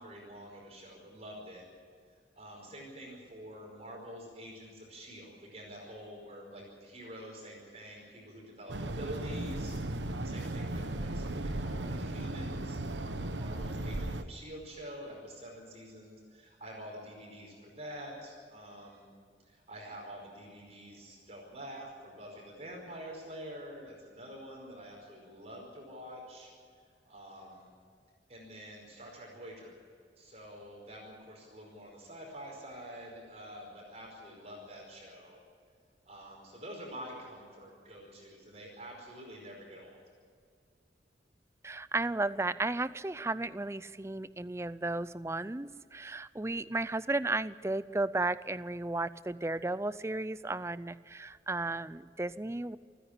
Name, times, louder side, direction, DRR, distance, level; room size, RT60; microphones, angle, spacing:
voice 1, 0.0-1.7 2.3-19.1 19.4-26.5 26.8-27.7 28.3-29.7 30.2-35.4 36.1-40.0, equal, 35° right, -1 dB, 5.0 m, -47 dB
sound 1, 8.7-14.2, right 1 dB, 80° right, 1.1 m, -36 dB
voice 2, 41.6-52.8, right 2 dB, 15° right, 16 dB, 0.4 m, -34 dB
28.5 x 10.0 x 9.9 m, 2.1 s
head